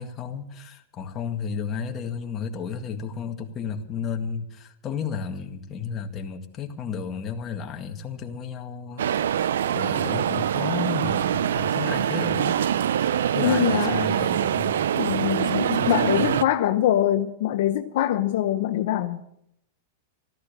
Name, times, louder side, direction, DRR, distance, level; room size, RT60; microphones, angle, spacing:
voice 1, 0.0-9.4 9.7-12.6 13.0-16.4, left 6 dB, 30° left, 4 dB, 1.9 m, -33 dB
sound 1, 9.0-16.4, right 9 dB, 85° right, 0.5 m, -24 dB
voice 2, 13.4-14.0 14.9-19.2, left 12 dB, 70° left, 8 dB, 0.8 m, -23 dB
14.0 x 13.0 x 6.7 m, 0.76 s
hypercardioid pair, 125°, 0 cm